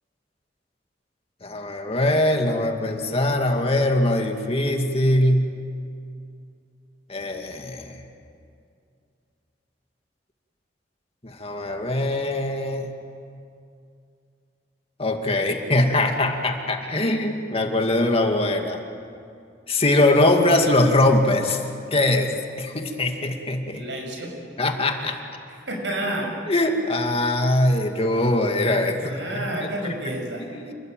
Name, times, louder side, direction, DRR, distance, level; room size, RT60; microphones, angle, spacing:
voice 1, 1.4-5.5 7.1-8.0 11.2-12.9 15.0-18.8 19.7-21.6 21.9-22.3 22.6-23.8 24.6-25.2 26.5-29.2 29.6-30.0 30.5-30.7, left 1 dB, 35° left, 4 dB, 2.2 m, -22 dB
voice 2, 23.7-24.3 25.5-26.3 29.0-30.5, right 1 dB, 80° right, 1 dB, 6.9 m, -30 dB
28.5 x 21.0 x 9.1 m, 2.4 s
head